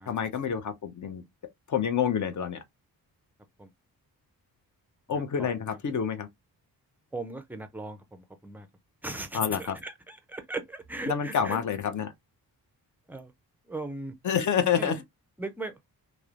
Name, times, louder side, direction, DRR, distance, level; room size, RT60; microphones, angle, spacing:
voice 1, 0.1-1.2 1.7-2.6 5.1-6.3 9.3-9.8 11.1-12.1 14.2-15.0, left 7 dB, 55° left, 0.6 m, -28 dB
voice 2, 5.1-5.5 7.1-8.7 9.0-11.6 13.1-13.3 13.7-14.2 14.8-14.9 15.4-15.7, right 2 dB, 5° right, 0.4 m, -38 dB
3.0 x 2.0 x 2.4 m
wide cardioid pair, 125°, 37 cm